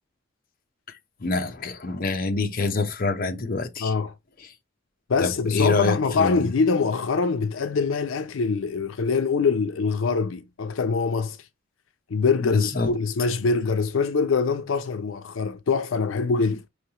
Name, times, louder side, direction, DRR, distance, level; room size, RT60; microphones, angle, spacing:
voice 1, 0.9-3.9 5.2-6.5 12.4-12.9, left 3 dB, 50° left, 0.8 m, -26 dB
voice 2, 3.8-4.1 5.1-11.4 12.1-16.6, left 4 dB, 85° left, 0.5 m, -24 dB
5.5 x 3.3 x 2.9 m
head